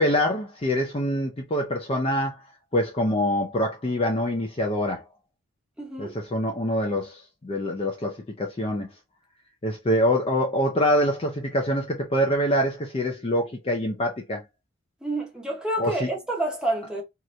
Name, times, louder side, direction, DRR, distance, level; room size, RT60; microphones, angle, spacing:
voice 1, 0.0-2.4 2.7-5.0 6.0-8.9 9.6-14.4 15.8-16.1, equal, 25° left, 0.5 m, -25 dB
voice 2, 5.8-6.2 15.0-17.0, right 2 dB, 5° right, 0.8 m, -28 dB
2.9 x 2.5 x 3.0 m
head